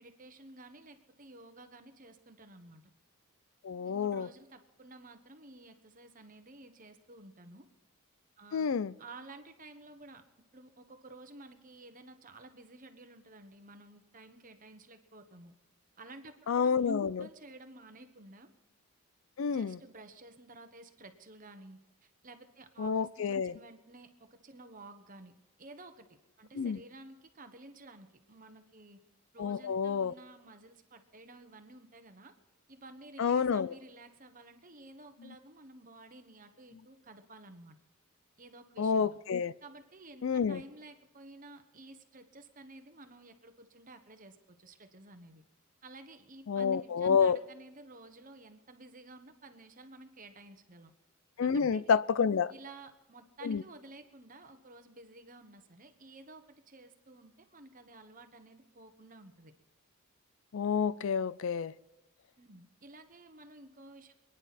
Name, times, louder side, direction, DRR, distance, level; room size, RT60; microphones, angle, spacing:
voice 1, 0.0-2.8 3.8-7.7 8.4-8.7 9.0-10.2 10.5-15.5 16.0-18.5 19.5-25.3 25.6-29.0 29.3-32.3 32.7-37.8 38.4-39.2 39.6-45.4 45.8-50.9 51.4-51.9 52.5-59.5 62.4-64.1, right 2 dB, 40° right, 1.2 m, -53 dB
voice 2, 3.6-4.3 8.5-8.9 16.5-17.3 19.4-19.8 22.8-23.5 26.5-26.8 29.4-30.1 33.2-33.7 38.8-39.5 40.2-40.6 46.5-47.4 51.4-52.5 53.4-53.6 60.5-61.7, left 6 dB, 65° left, 0.4 m, -29 dB
27.0 x 10.0 x 4.2 m
head